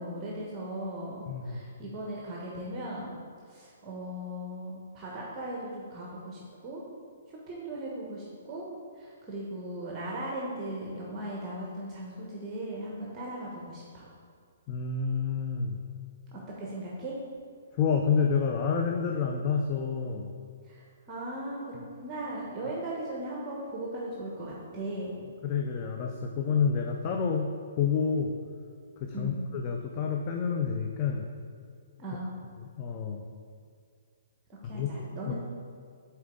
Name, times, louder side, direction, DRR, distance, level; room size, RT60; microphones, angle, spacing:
voice 1, 0.0-3.2 3.5-6.8 7.3-8.7 8.9-14.1 16.3-17.2 20.6-25.2 29.1-29.4 32.0-32.3 34.6-35.4, right 1 dB, 25° right, -4 dB, 1.1 m, -38 dB
voice 2, 1.3-1.6 14.7-15.8 17.7-20.3 25.4-28.3 29.0-31.2 32.6-33.2 34.6-35.3, left 6 dB, 35° left, 2 dB, 0.5 m, -29 dB
7.1 x 4.4 x 3.8 m, 2.1 s
hypercardioid pair, 135°, 0 cm